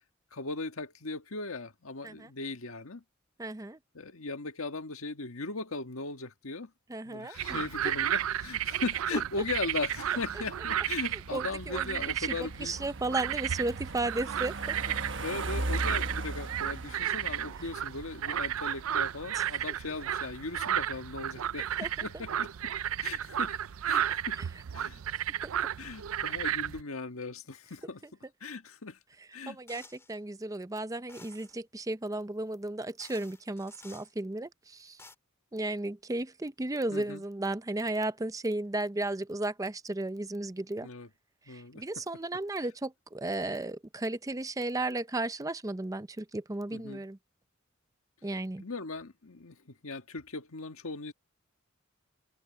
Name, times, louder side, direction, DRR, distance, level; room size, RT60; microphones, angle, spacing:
voice 1, 0.3-3.0 3.9-6.7 7.0-12.8 15.2-22.7 23.0-23.6 23.8-24.4 24.7-25.0 25.8-28.0 28.4-29.0 29.3-29.6 36.9-37.2 40.8-41.1 41.5-41.8 46.7-47.1 48.6-49.6 49.8-51.1, left 3 dB, 90° left, 1.6 m, -38 dB
voice 2, 3.4-3.8 6.9-7.6 9.1-9.2 11.3-14.8 19.3-19.4 21.8-21.9 22.1-22.2 24.4-24.5 29.5-35.0 35.5-40.9 41.5-47.2 48.2-48.6, right 2 dB, 15° right, 0.5 m, -34 dB
sound 1, 7.4-26.8, right 10 dB, 85° right, 0.4 m, -33 dB
sound 2, 8.8-20.5, right 2 dB, 60° right, 1.2 m, -40 dB
sound 3, 29.7-30.1 31.1-31.5 32.5-32.6 33.0-34.1 34.7-35.1, left 3 dB, 15° left, 2.7 m, -53 dB
head